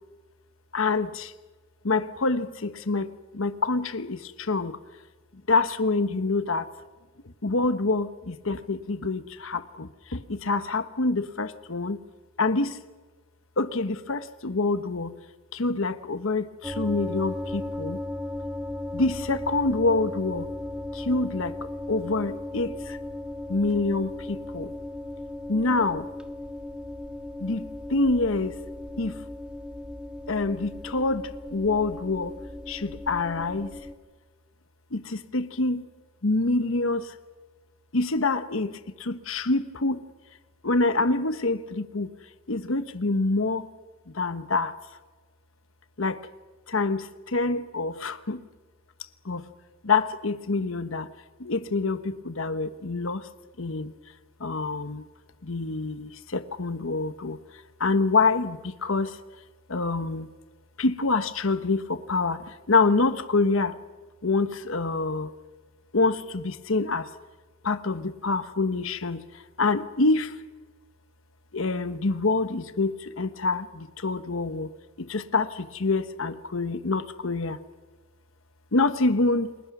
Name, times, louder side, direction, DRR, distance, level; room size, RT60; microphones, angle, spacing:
voice 1, 0.7-1.3 1.8-3.1 3.3-4.8 5.5-6.7 7.4-12.0 12.4-12.8 13.6-15.1 15.5-18.0 18.9-20.5 20.9-21.5 21.9-23.0 23.5-24.7 25.5-26.1 27.4-28.6 29.0-29.2 30.3-32.3 32.7-33.7 34.9-35.9 36.2-37.1 37.9-40.0 40.6-42.1 42.5-43.7 44.1-44.7 46.0-46.2 46.7-48.4 49.2-49.4 49.8-51.1 51.4-53.2 53.6-53.9 54.4-55.0 55.4-57.4 57.8-59.2 59.7-60.3 60.8-63.8 64.2-65.3 65.9-67.1 67.6-69.2 69.6-70.3 71.5-74.7 75.0-77.6 78.7-79.5, left 3 dB, 75° left, 11 dB, 1.1 m, -26 dB
sound 1, 16.6-33.9, left 1 dB, 5° right, 1.4 m, -36 dB
29.5 x 21.5 x 6.1 m, 1.3 s
head